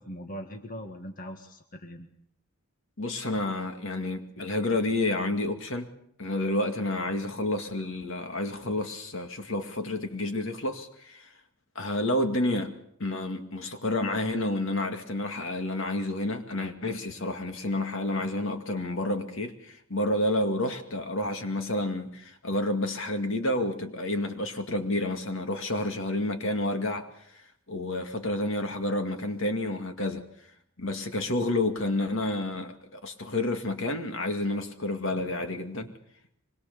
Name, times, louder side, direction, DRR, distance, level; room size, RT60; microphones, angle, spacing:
voice 1, 0.0-2.1, equal, 40° left, 1.8 m, -41 dB
voice 2, 3.0-5.9 6.2-11.3 11.8-27.1 27.3-27.4 27.7-30.2 30.8-35.9, left 1 dB, 60° left, 2.2 m, -30 dB
24.5 x 21.5 x 6.9 m
head